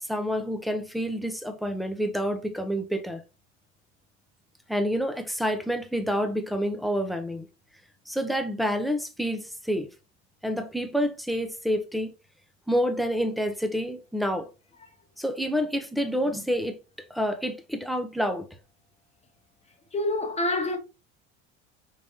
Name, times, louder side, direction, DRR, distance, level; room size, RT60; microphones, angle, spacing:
voice 1, 0.0-3.2 4.7-7.5 8.1-9.9 10.4-12.1 12.7-14.5 15.2-16.8 17.1-18.5, equal, ahead, 0.8 m, -28 dB
voice 2, 19.9-20.8, left 2 dB, 20° left, 1.3 m, -26 dB
4.9 x 3.5 x 2.8 m
supercardioid pair, 95°, 30 cm